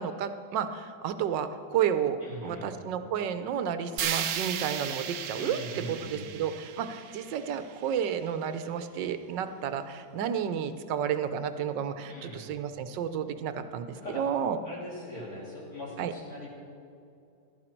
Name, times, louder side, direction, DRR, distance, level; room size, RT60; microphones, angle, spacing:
voice 1, 0.0-5.6 5.9-14.6 16.0-16.1, right 8 dB, 80° right, 10 dB, 1.4 m, -31 dB
voice 2, 2.2-2.7 5.4-6.2 12.1-12.5 14.0-14.3 14.6-16.5, left 1 dB, 55° left, -6 dB, 3.7 m, -41 dB
sound 1, 4.0-8.0, right 9 dB, 65° right, 0.8 m, -35 dB
15.0 x 11.5 x 4.5 m, 2.6 s
omnidirectional pair, 1.9 m